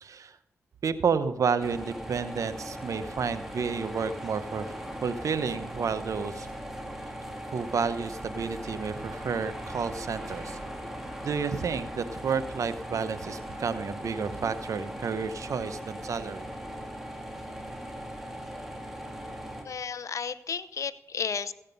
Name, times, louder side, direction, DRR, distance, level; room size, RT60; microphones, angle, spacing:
voice 1, 0.0-0.4 0.8-4.7 5.0-6.5 7.5-10.6 11.2-16.5, right 6 dB, 70° right, 13 dB, 0.9 m, -31 dB
sound 1, 1.6-19.6, equal, 5° right, 3.1 m, -39 dB
voice 2, 19.6-21.5, left 6 dB, 70° left, 15 dB, 0.7 m, -33 dB
15.5 x 8.9 x 5.4 m, 0.87 s
cardioid pair, 45°, 6 cm